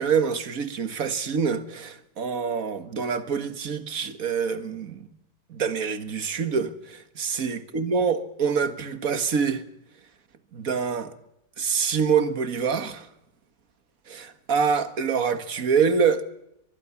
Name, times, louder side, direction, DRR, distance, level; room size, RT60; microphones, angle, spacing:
voice 1, 0.0-5.1 5.5-9.6 10.5-11.1 11.6-13.1 14.1-16.2, right 6 dB, 55° right, 2.0 m, -26 dB
23.5 x 21.5 x 7.2 m
omnidirectional pair, 1.8 m